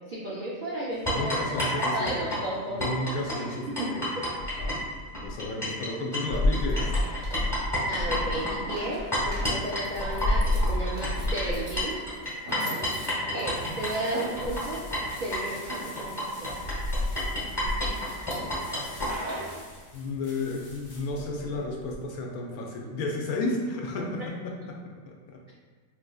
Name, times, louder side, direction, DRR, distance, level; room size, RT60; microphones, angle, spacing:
voice 1, 0.1-1.3 1.7-2.8 3.7-3.9 4.2-4.3 7.9-12.0 13.3-14.8 15.2-16.7, right 1 dB, 80° right, -6 dB, 0.4 m, -34 dB
voice 2, 1.1-2.2 2.7-4.0 4.4-4.8 5.2-6.9 12.5-13.2 19.9-25.5, left 2 dB, 80° left, 0 dB, 1.0 m, -33 dB
sound 1, 1.1-5.9 6.1-19.1, left 1 dB, 20° left, 0.9 m, -28 dB
sound 2, 6.3-19.6, right 1 dB, 40° right, 0.6 m, -42 dB
sound 3, 13.5-21.9, left 1 dB, 50° left, 0.6 m, -48 dB
4.1 x 2.5 x 2.3 m, 1.5 s
omnidirectional pair, 1.5 m